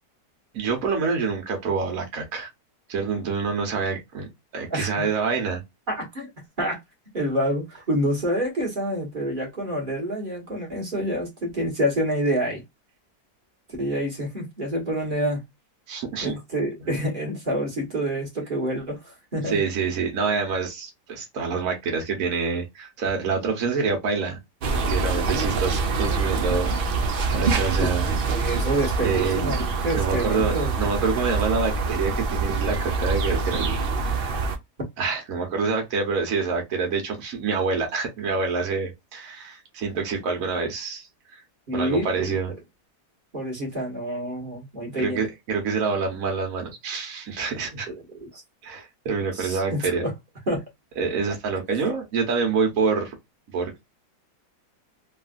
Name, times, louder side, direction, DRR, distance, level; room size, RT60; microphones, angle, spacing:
voice 1, 0.5-2.5 2.9-4.3 4.5-5.6 15.9-16.3 16.9-17.0 19.5-24.4 24.9-26.7 27.3-28.1 29.0-29.6 29.9-34.4 35.0-41.1 41.3-41.4 41.7-42.5 45.0-47.9 48.6-50.0 51.0-53.2 53.5-53.9, right 5 dB, 60° right, 1.3 m, -26 dB
voice 2, 4.7-5.1 5.9-6.3 6.6-6.8 7.1-12.6 13.8-15.4 16.2-19.6 27.8-27.9 28.3-30.7 41.7-42.3 43.3-45.2 47.9-48.0 48.3-48.4 49.3-50.1 50.5-50.6, equal, 35° right, 1.3 m, -27 dB
sound 1, 24.6-34.6, right 4 dB, 90° right, 0.4 m, -25 dB
3.3 x 2.4 x 2.4 m
omnidirectional pair, 1.8 m